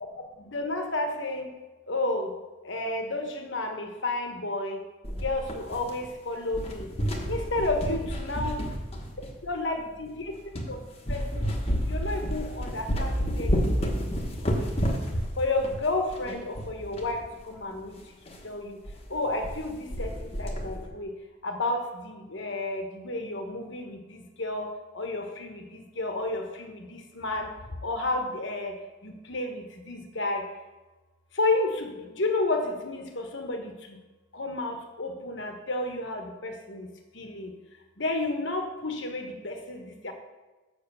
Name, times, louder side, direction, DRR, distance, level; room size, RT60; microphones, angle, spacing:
voice 1, 0.4-1.5 1.9-2.3 2.6-4.8 5.2-6.9 7.3-8.6 9.4-10.3 10.7-10.8 11.1-11.5 11.9-15.0 15.4-17.2 17.5-18.0 18.4-18.8 19.1-20.1 20.4-21.1 21.4-24.7 24.9-27.5 27.8-28.7 29.0-30.4 31.4-33.7 34.3-36.9 37.1-37.5 38.0-40.1, left 2 dB, 60° left, 4 dB, 1.2 m, -31 dB
sound 1, 5.0-6.2 6.5-9.5 10.1-10.2 10.5-10.7 11.1-17.1 17.4-17.5 17.8-17.9 18.3-18.4 18.9-19.0 19.2-19.6 19.9-20.9, equal, 30° left, 1.1 m, -30 dB
7.0 x 6.4 x 6.9 m, 1.2 s
head